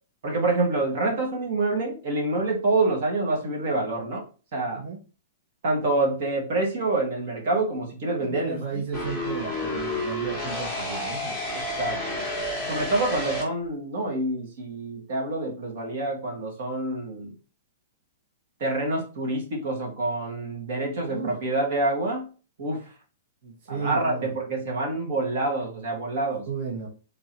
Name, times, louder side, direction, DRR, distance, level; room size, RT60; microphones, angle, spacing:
voice 1, 0.2-4.2 4.5-4.8 5.6-8.6 11.5-12.2 12.7-17.3 18.6-22.3 22.6-22.9 23.7-26.5, right 2 dB, 50° right, 0 dB, 1.5 m, -27 dB
voice 2, 8.2-11.4 21.1-21.4 23.4-24.3 26.4-26.9, right 5 dB, 35° right, -4 dB, 1.1 m, -34 dB
sound 1, 8.9-13.4, left 1 dB, 5° right, 1.2 m, -30 dB
3.8 x 2.7 x 4.4 m, 0.35 s
hypercardioid pair, 170°, 0 cm